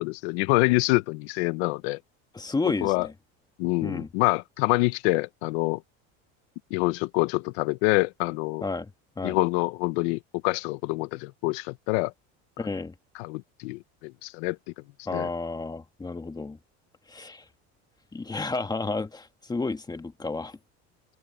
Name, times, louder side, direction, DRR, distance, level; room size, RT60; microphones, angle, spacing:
voice 1, 0.0-2.0 2.8-3.1 3.6-5.8 6.7-8.6 9.2-12.1 13.1-14.6 15.1-15.3, left 23 dB, 85° left, 1.0 m, -26 dB
voice 2, 2.3-3.1 3.8-4.1 8.6-8.9 9.2-9.4 12.6-12.9 15.0-16.6 17.1-17.4 18.1-20.6, left 3 dB, 10° left, 1.5 m, -31 dB
cardioid pair, 130°, 32 cm